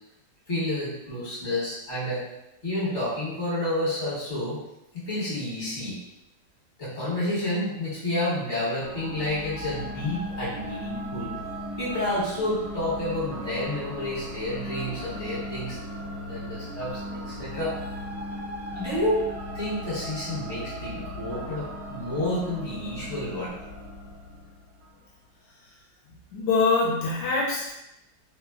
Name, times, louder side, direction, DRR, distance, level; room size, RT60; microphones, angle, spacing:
voice 1, 0.5-2.3 2.6-4.6 4.9-6.0 6.8-11.4 11.8-15.8 16.2-17.8 18.7-19.3 19.5-23.5, left 1 dB, 45° left, -9 dB, 1.2 m, -30 dB
sound 1, 8.8-25.0, equal, 70° right, 0.9 m, -37 dB
voice 2, 26.3-27.7, left 3 dB, 75° left, -3 dB, 1.1 m, -24 dB
3.0 x 2.0 x 2.3 m, 0.87 s
omnidirectional pair, 2.0 m